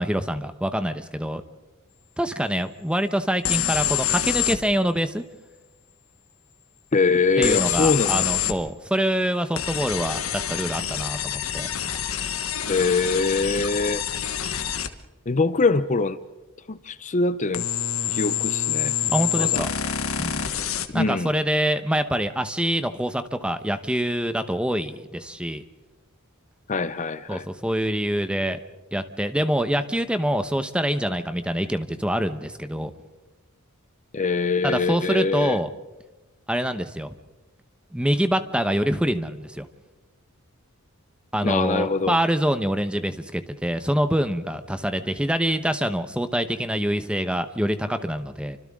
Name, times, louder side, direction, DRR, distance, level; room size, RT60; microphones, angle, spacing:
voice 1, 0.0-1.4 2.2-5.2 7.4-11.7 19.1-19.7 20.2-20.4 20.9-25.6 27.3-28.6 28.9-32.9 34.6-35.7 36.5-37.1 37.9-39.7 41.3-48.6, equal, 5° right, 9 dB, 1.0 m, -25 dB
sound 1, 3.5-4.6 7.4-8.6 9.6-14.9 17.5-20.9, left 10 dB, 70° left, 1.3 m, -26 dB
voice 2, 6.9-8.3 12.7-14.0 15.3-16.2 16.7-17.7 18.1-18.9 19.4-19.7 20.9-21.3 26.7-27.5 34.1-35.6 41.4-42.2, left 4 dB, 35° left, 13 dB, 0.6 m, -23 dB
29.5 x 25.5 x 3.7 m, 1.1 s
head